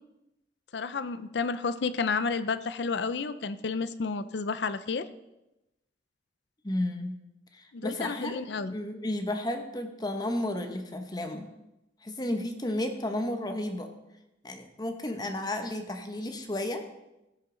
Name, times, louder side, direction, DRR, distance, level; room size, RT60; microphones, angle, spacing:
voice 1, 0.7-5.1 7.7-8.7, left 4 dB, 70° left, 14 dB, 0.5 m, -31 dB
voice 2, 6.6-7.2 7.5-8.4 8.7-11.5 12.0-13.9 14.4-16.8, left 1 dB, 25° left, 6 dB, 1.0 m, -32 dB
16.0 x 6.6 x 3.9 m, 0.94 s
head